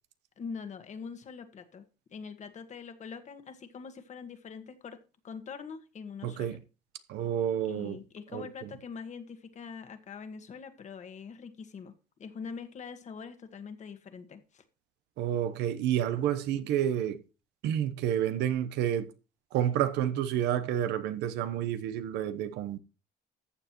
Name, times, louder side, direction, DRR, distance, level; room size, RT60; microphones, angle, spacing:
voice 1, 0.4-1.8 2.1-5.0 5.2-6.6 7.6-11.9 12.2-14.6, left 5 dB, 45° left, 1.5 m, -43 dB
voice 2, 6.2-6.6 7.1-8.0 8.3-8.4 15.2-17.2 17.6-19.1 19.5-22.8, right 10 dB, 85° right, 0.9 m, -29 dB
14.0 x 7.1 x 3.0 m
cardioid pair, 110°, 17 cm